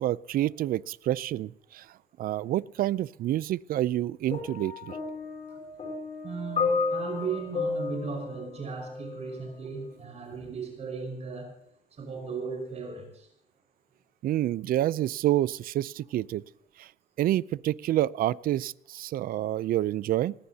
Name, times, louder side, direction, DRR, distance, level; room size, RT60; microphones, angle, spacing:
voice 1, 0.0-1.9 2.2-5.0 14.2-16.4 16.8-16.9 17.2-20.3, right 13 dB, 60° right, 21 dB, 0.5 m, -28 dB
sound 1, 4.3-9.4 10.3-10.5, left 4 dB, 40° left, 6.7 m, -32 dB
voice 2, 6.2-11.5 11.9-13.3, right 5 dB, 40° right, 2 dB, 5.3 m, -36 dB
20.0 x 20.0 x 2.8 m, 0.75 s
cardioid pair, 110°, 17 cm